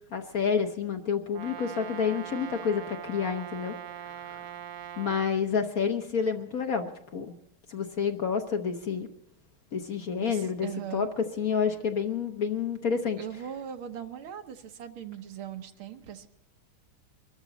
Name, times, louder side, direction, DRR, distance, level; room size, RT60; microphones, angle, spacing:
voice 1, 0.1-3.7 4.0-4.4 5.0-7.3 7.7-9.1 9.7-10.7 10.9-13.2, left 6 dB, 50° left, 5 dB, 1.3 m, -29 dB
Brass instrument, 1.3-5.3, right 11 dB, 65° right, 0.9 m, -41 dB
voice 2, 10.2-11.1 12.9-16.3, right 9 dB, 80° right, 7 dB, 1.9 m, -40 dB
23.5 x 13.5 x 4.0 m, 0.81 s
omnidirectional pair, 2.3 m